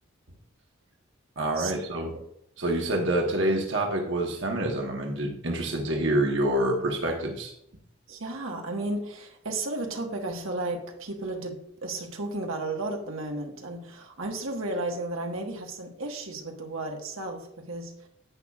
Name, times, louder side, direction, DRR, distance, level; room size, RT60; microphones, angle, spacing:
voice 1, 1.4-2.2 2.6-7.5, right 1 dB, 60° right, 1 dB, 1.2 m, -27 dB
voice 2, 8.1-18.1, right 2 dB, 85° right, 2 dB, 1.4 m, -33 dB
10.5 x 8.6 x 2.4 m, 0.72 s
head